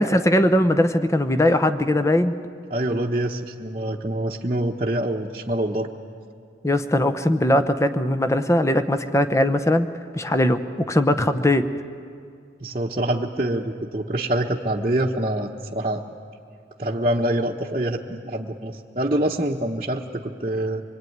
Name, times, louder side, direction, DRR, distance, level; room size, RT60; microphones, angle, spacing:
voice 1, 0.0-2.3 6.6-9.9 10.1-11.7, left 1 dB, 15° left, 10 dB, 0.9 m, -20 dB
voice 2, 2.7-5.9 12.6-16.0 16.8-20.8, right 1 dB, 35° right, -3 dB, 1.1 m, -25 dB
25.0 x 22.5 x 9.4 m, 2.4 s
head